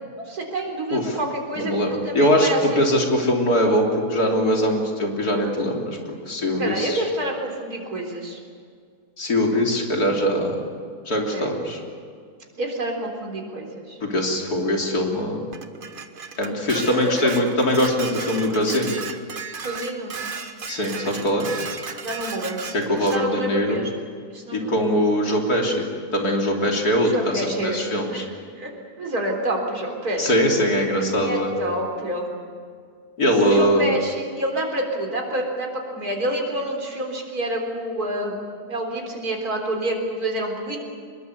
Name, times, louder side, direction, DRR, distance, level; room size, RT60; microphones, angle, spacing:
voice 1, 0.2-2.8 6.6-8.4 11.3-11.6 12.5-14.0 16.9-17.3 19.6-20.2 22.0-23.9 24.3-24.8 27.0-28.3 28.5-28.7 29.0-30.4 31.2-32.4 33.4-38.4 38.7-40.8, right 1 dB, 75° right, 1 dB, 4.4 m, -28 dB
voice 2, 1.6-2.5 2.8-6.0 6.3-7.0 9.2-10.6 11.1-11.8 14.0-15.4 16.4-19.0 20.7-21.5 22.7-23.8 24.5-25.9 26.1-28.3 30.2-31.5 33.2-33.8, equal, 75° left, 0 dB, 3.9 m, -22 dB
Dishes pots and pans, 15.5-23.2, right 5 dB, 35° right, 1.3 m, -35 dB
24.0 x 21.5 x 8.3 m, 2.2 s
omnidirectional pair, 1.6 m